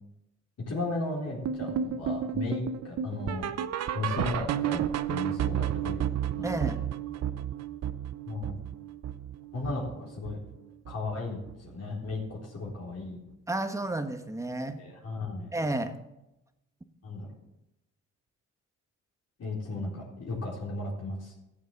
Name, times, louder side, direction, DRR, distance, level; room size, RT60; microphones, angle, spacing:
voice 1, 0.7-3.5 3.9-4.8 5.1-6.0 6.3-6.8 8.3-8.6 9.5-10.4 10.9-13.2 14.8-15.5 17.0-17.3 19.4-21.3, left 2 dB, 55° left, -4 dB, 4.0 m, -35 dB
sound 1, 1.4-10.6 10.9-11.2 11.5-11.6 12.1-12.2 12.7-12.8, right 9 dB, 60° right, 0.8 m, -32 dB
voice 2, 6.4-6.8 13.5-14.8 15.5-16.0, right 2 dB, 10° right, 8 dB, 1.4 m, -31 dB
14.5 x 7.4 x 7.1 m, 0.89 s
cardioid pair, 90°, 30 cm